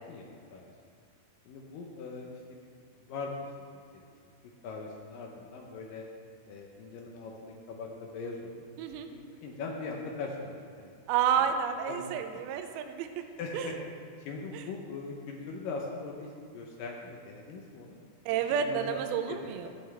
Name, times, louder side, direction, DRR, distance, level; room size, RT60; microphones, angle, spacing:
voice 1, 1.5-2.6 3.1-3.3 3.9-4.0 4.6-6.1 6.5-8.5 8.9-10.9 11.3-11.4 11.9-12.4 13.4-13.8 14.2-18.0 18.7-19.0 19.3-19.7, left 4 dB, 80° left, 0 dB, 2.0 m, -40 dB
voice 2, 11.1-13.1 13.5-13.7 14.5-14.6 18.3-19.7, right 8 dB, 85° right, 6 dB, 2.2 m, -30 dB
12.5 x 9.4 x 3.4 m, 2.3 s
omnidirectional pair, 5.0 m